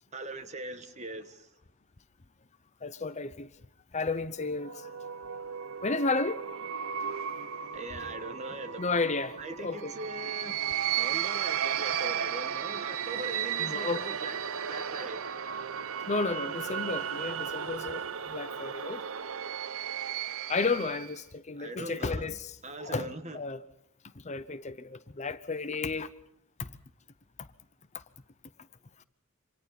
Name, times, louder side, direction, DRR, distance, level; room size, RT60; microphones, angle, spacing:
voice 1, 0.1-1.5 7.7-8.9 9.4-14.4 14.7-15.2 21.6-22.4 22.6-23.4, right 2 dB, 30° right, 1.5 m, -41 dB
voice 2, 2.8-3.5 3.9-5.0 5.8-6.4 8.8-9.9 13.6-14.0 16.1-19.0 20.5-23.1 23.3-23.6 24.1-26.1 26.6-26.8 27.9-28.0, left 3 dB, 30° left, 0.8 m, -32 dB
sound 1, 4.4-21.2, right 9 dB, 75° right, 0.8 m, -35 dB
28.0 x 26.0 x 4.2 m
head